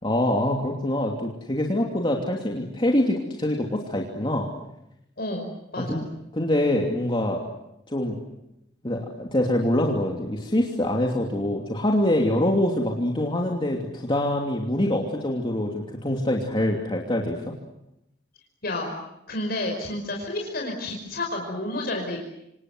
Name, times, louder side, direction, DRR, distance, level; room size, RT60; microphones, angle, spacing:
voice 1, 0.0-4.5 5.8-6.0 6.3-7.4 7.9-8.2 8.8-17.6, left 1 dB, 30° left, 0 dB, 2.9 m, -25 dB
voice 2, 5.2-6.0 18.6-19.0 19.3-22.2, left 1 dB, 60° left, 1 dB, 5.3 m, -30 dB
28.5 x 26.5 x 7.9 m, 0.84 s
head